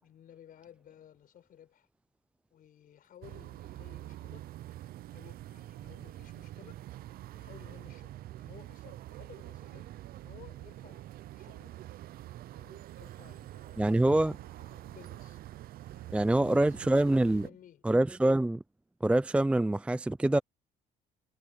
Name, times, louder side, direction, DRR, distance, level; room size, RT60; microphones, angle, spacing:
voice 1, 0.0-1.9 2.5-4.5 5.1-6.8 7.3-11.1 11.3-11.8 12.5-15.4 15.9-17.8, left 10 dB, 60° left, 4.7 m, -56 dB
sound 1, 3.2-17.5, right 14 dB, 60° right, 0.5 m, -46 dB
voice 2, 13.8-14.4 16.1-17.5 17.8-18.6 19.0-20.4, right 1 dB, 5° right, 0.4 m, -25 dB
cardioid pair, 110°, 17 cm